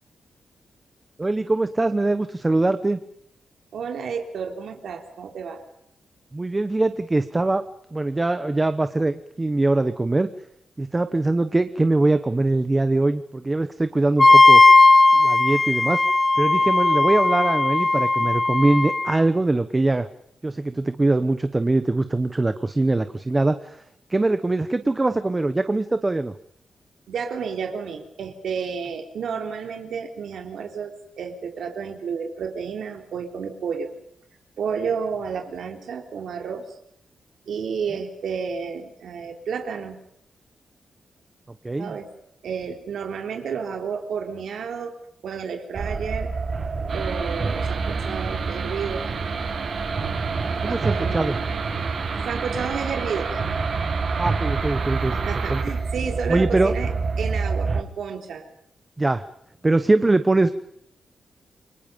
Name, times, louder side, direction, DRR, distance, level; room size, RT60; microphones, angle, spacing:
voice 1, 1.2-3.0 6.3-7.7 7.9-10.3 10.8-14.6 15.1-16.0 16.4-20.1 20.4-23.8 24.1-26.3 41.6-42.0 50.6-51.4 54.2-55.6 56.3-56.7 59.0-59.2 59.6-60.5, right 2 dB, 15° right, 10 dB, 1.1 m, -22 dB
voice 2, 3.7-5.6 27.1-33.9 34.6-36.7 37.5-40.0 41.8-42.1 42.4-45.0 45.2-46.3 46.9-49.1 50.6-51.5 52.3-53.4 55.1-56.9 57.2-58.5, right 6 dB, 75° right, 4 dB, 3.8 m, -31 dB
Wind instrument woodwind instrument, 14.2-19.2, left 2 dB, 20° left, 1.0 m, -16 dB
sound 1, 45.8-57.8, right 4 dB, 35° right, 1.8 m, -28 dB
sound 2, 46.9-55.6, right 5 dB, 50° right, 6.7 m, -32 dB
29.0 x 24.5 x 5.4 m, 0.71 s
wide cardioid pair, 175°, 0 cm